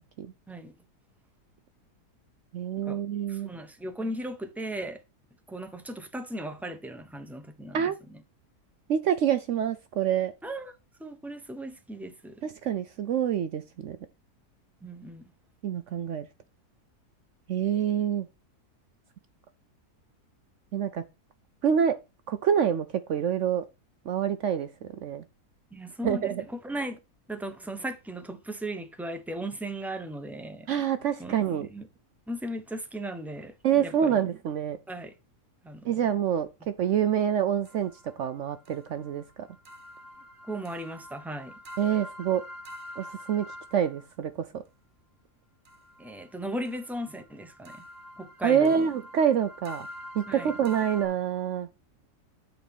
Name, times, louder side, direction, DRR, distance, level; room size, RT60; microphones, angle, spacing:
voice 1, 2.5-3.5 7.7-8.0 8.9-10.3 12.4-14.0 15.6-16.3 17.5-18.3 20.7-21.0 21.6-22.0 22.3-23.6 24.1-24.7 25.0-25.2 26.0-26.4 30.7-31.7 33.6-34.8 35.8-36.5 36.8-37.9 38.2-39.5 41.8-42.4 43.0-44.6 48.4-49.9 50.1-51.7, right 8 dB, 70° right, 0.7 m, -26 dB
voice 2, 3.3-5.0 5.5-8.2 10.4-10.7 11.0-12.4 14.8-15.3 25.7-27.0 27.3-30.7 31.2-31.4 31.7-31.9 32.3-33.5 33.8-34.2 34.9-35.1 35.6-36.0 40.5-41.5 46.0-47.8 48.2-48.9 50.3-50.5, right 1 dB, ahead, 0.6 m, -37 dB
sound 1, 37.6-44.1 45.6-51.1, left 1 dB, 40° right, 1.3 m, -46 dB
8.5 x 4.2 x 5.3 m
omnidirectional pair, 1.7 m